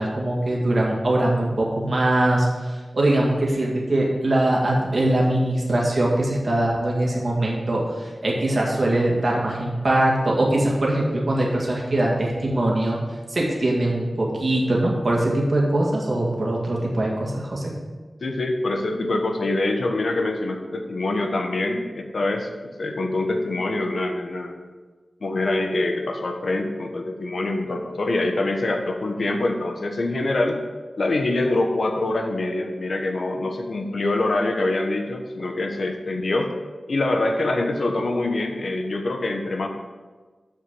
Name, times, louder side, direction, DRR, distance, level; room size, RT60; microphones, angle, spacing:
voice 1, 0.0-13.0 13.3-17.7, right 1 dB, 50° right, -3 dB, 2.0 m, -22 dB
voice 2, 18.2-24.5 25.2-30.6 31.0-36.5 36.9-39.7, left 2 dB, 70° left, 4 dB, 1.1 m, -25 dB
6.8 x 6.5 x 6.1 m, 1.4 s
wide cardioid pair, 80°, 0 cm